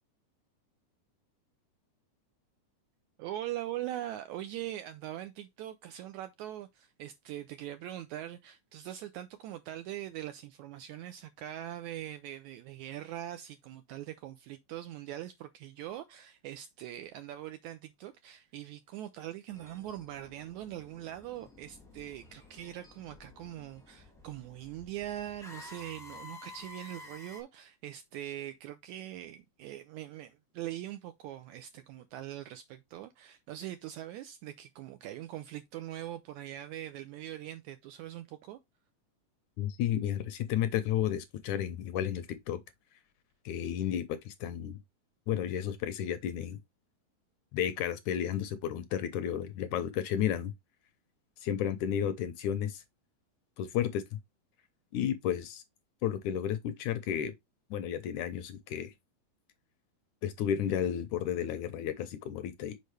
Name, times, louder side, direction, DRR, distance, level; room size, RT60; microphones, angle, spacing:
voice 1, 3.2-38.6, right 13 dB, 85° right, 1.7 m, -42 dB
sound 1, 19.5-27.4, left 2 dB, 5° left, 0.5 m, -52 dB
voice 2, 39.6-42.6 43.5-44.8 45.3-46.6 47.5-50.5 51.4-52.8 53.6-54.0 54.9-55.6 56.0-57.3 57.7-58.9 60.2-62.8, left 10 dB, 75° left, 1.9 m, -32 dB
6.5 x 5.2 x 3.2 m
omnidirectional pair, 3.8 m